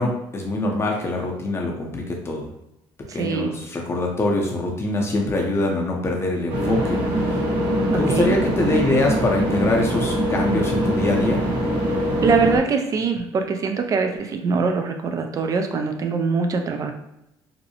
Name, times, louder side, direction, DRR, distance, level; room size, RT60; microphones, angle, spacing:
voice 1, 0.0-2.5 3.1-7.0 7.3-7.4 7.9-11.4, left 2 dB, 30° left, 0 dB, 0.6 m, -24 dB
voice 2, 3.1-3.5 7.9-8.4 12.2-16.9, right 5 dB, 40° right, 5 dB, 0.4 m, -23 dB
sound 1, 6.5-12.6, right 1 dB, 80° right, 0.8 m, -23 dB
2.6 x 2.0 x 2.7 m, 0.84 s
cardioid pair, 115°, 9 cm